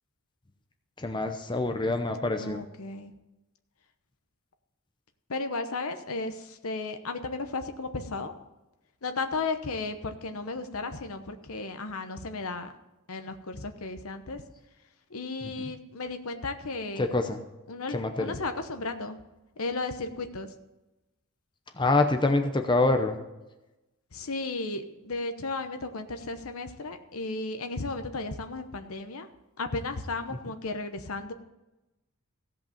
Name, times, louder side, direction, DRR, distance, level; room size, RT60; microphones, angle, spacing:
voice 1, 1.0-2.6 17.0-17.4 17.9-18.3 21.8-23.2, left 2 dB, 20° left, 6 dB, 0.7 m, -25 dB
voice 2, 2.4-3.1 5.3-8.3 9.0-12.7 13.1-14.4 15.1-17.1 17.7-19.2 19.6-20.5 24.1-29.3 29.6-31.3, left 3 dB, 75° left, 8 dB, 0.9 m, -34 dB
16.0 x 5.5 x 7.1 m, 1.0 s
head